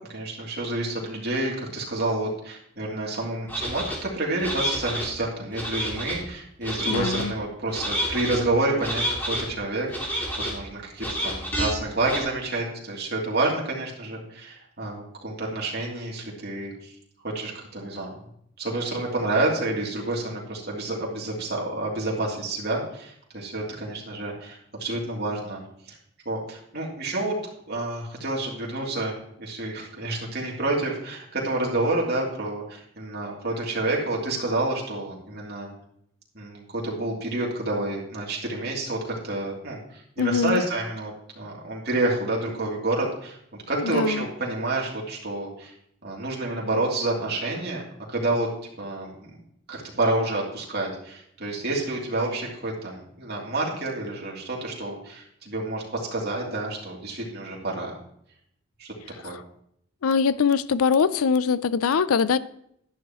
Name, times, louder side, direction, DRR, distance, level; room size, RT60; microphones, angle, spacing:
voice 1, 0.1-16.9 17.3-18.1 18.6-26.0 26.2-27.4 27.7-35.7 36.3-43.4 43.7-45.7 46.0-47.8 48.1-48.5 48.8-49.1 49.7-57.9 58.8-59.4, right 2 dB, 50° right, 3.0 m, -29 dB
sound 1, 3.5-4.0 4.4-5.1 5.5-6.2 6.6-7.2 7.7-8.4 8.8-9.4 9.9-10.5 11.0-11.7 12.0-12.2, equal, 10° left, 2.7 m, -29 dB
voice 2, 6.9-7.3 40.2-40.6 43.9-44.2 60.0-62.4, left 6 dB, 85° left, 0.4 m, -22 dB
12.5 x 11.0 x 3.0 m
head